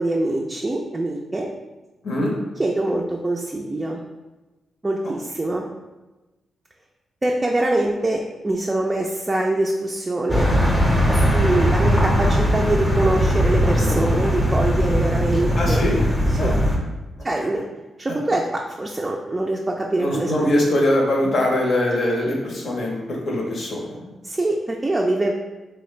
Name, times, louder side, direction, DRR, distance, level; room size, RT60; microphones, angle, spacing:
voice 1, 0.0-1.5 2.6-4.0 4.8-5.6 7.2-10.5 11.1-15.8 16.4-16.5 17.2-17.7 18.0-20.5 24.2-25.3, right 2 dB, 25° right, 0 dB, 0.3 m, -24 dB
sound 1, 10.3-16.8, equal, 15° left, 0.7 m, -19 dB
voice 2, 15.6-16.0 16.4-16.6 17.4-17.5 20.0-24.1, left 1 dB, 65° left, -1 dB, 0.8 m, -22 dB
3.2 x 2.2 x 3.1 m, 1.1 s
supercardioid pair, 55°, 0 cm